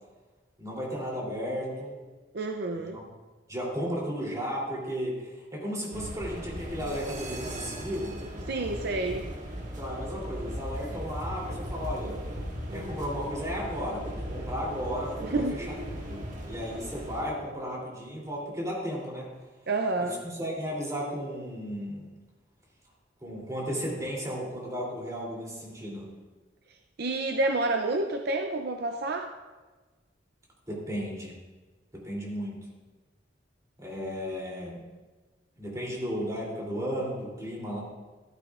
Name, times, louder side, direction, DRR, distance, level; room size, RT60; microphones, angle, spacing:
voice 1, 0.6-2.0 2.7-3.0 3.5-8.2 9.8-12.2 12.7-19.3 20.0-22.1 23.2-26.1 30.7-31.3 31.9-32.6 33.8-34.8 35.6-37.8, equal, 20° right, -3 dB, 3.2 m, -34 dB
voice 2, 2.3-3.0 8.5-9.3 15.2-15.6 19.7-20.2 27.0-29.3, right 2 dB, 60° right, 4 dB, 0.6 m, -29 dB
sound 1, 5.9-17.2, equal, 45° right, 1.7 m, -37 dB
14.5 x 13.5 x 2.5 m, 1.3 s
head